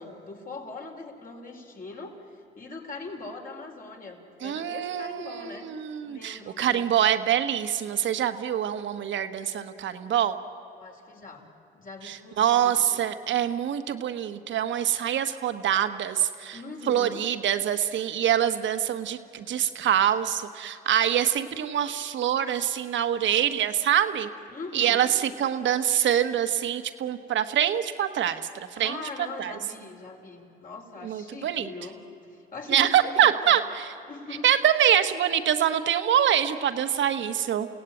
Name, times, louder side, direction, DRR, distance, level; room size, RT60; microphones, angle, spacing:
voice 1, 0.0-5.7 6.0-6.9 10.7-11.5 11.7-13.0 16.5-17.2 24.5-25.1 28.8-32.0 32.3-33.6 34.1-34.5, left 3 dB, 45° left, 1 dB, 4.3 m, -41 dB
voice 2, 4.4-10.4 12.0-16.6 16.9-24.3 24.7-28.9 29.4-29.5 31.0-31.7 32.7-33.9 34.4-37.7, right 10 dB, 70° right, 9 dB, 1.3 m, -25 dB
29.5 x 17.0 x 9.1 m, 2.8 s
cardioid pair, 90°, 20 cm